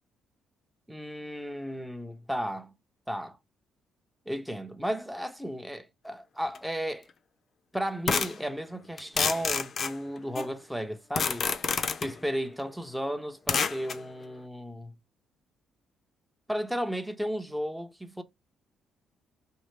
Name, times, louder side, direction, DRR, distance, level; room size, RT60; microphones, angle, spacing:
voice 1, 0.9-2.7 3.1-3.4 4.3-7.1 7.7-11.5 12.0-15.0 16.5-18.2, equal, ahead, 0.6 m, -34 dB
sound 1, 6.5-6.6 8.1-8.4 9.0-10.5 11.2-12.1 13.5-14.0, left 5 dB, 45° left, 0.5 m, -28 dB
5.4 x 2.8 x 3.2 m
cardioid pair, 130°, 0 cm